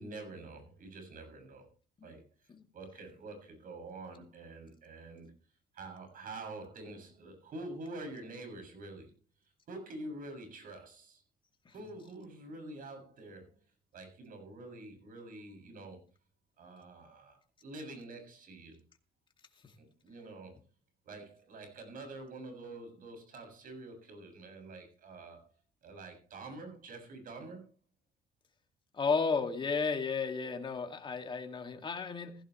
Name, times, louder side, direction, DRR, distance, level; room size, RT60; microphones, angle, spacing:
voice 1, 0.0-1.7 2.0-5.3 5.7-9.2 9.7-11.2 11.7-13.6 13.9-16.0 16.6-18.8 19.8-20.6 21.0-25.5 25.8-27.7, right 2 dB, 55° right, 5 dB, 7.2 m, -47 dB
voice 2, 28.9-32.3, left 5 dB, 30° left, 5 dB, 2.4 m, -33 dB
16.5 x 15.0 x 3.2 m, 0.35 s
cardioid pair, 110°, 17 cm